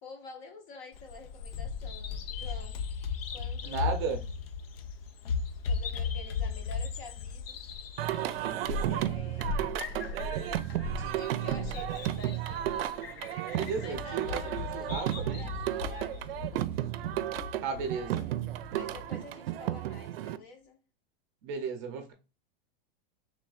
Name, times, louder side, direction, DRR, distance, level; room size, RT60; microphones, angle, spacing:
voice 1, 0.0-2.8 3.3-3.9 5.6-7.6 8.9-10.4 10.8-12.8 13.7-16.4 18.7-20.8, left 3 dB, 35° left, 0.7 m, -49 dB
Bird vocalization bird call bird song, 0.9-19.1, left 5 dB, 85° left, 0.7 m, -37 dB
voice 2, 3.6-4.2 13.5-14.4 14.7-15.5 17.6-18.3 21.4-22.1, right 5 dB, 30° right, 0.6 m, -34 dB
Singing, 8.0-20.4, right 13 dB, 80° right, 0.5 m, -33 dB
3.3 x 3.2 x 3.6 m
supercardioid pair, 170°, 29 cm